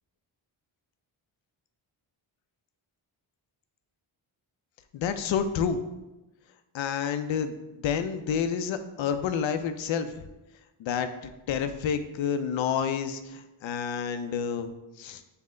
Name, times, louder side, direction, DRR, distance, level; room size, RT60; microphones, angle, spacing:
voice 1, 4.9-5.8 6.7-7.6 7.8-10.2 10.8-15.2, left 7 dB, 70° left, 10 dB, 0.5 m, -29 dB
5.6 x 2.1 x 3.7 m, 1.0 s
cardioid pair, 75°, 49 cm